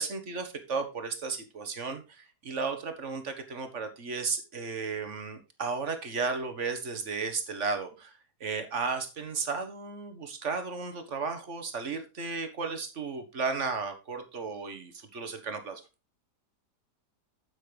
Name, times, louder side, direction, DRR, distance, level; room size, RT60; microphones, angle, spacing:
voice 1, 0.0-15.8, right 4 dB, 45° right, 8 dB, 1.6 m, -34 dB
8.6 x 8.3 x 3.3 m, 0.28 s
omnidirectional pair, 1.8 m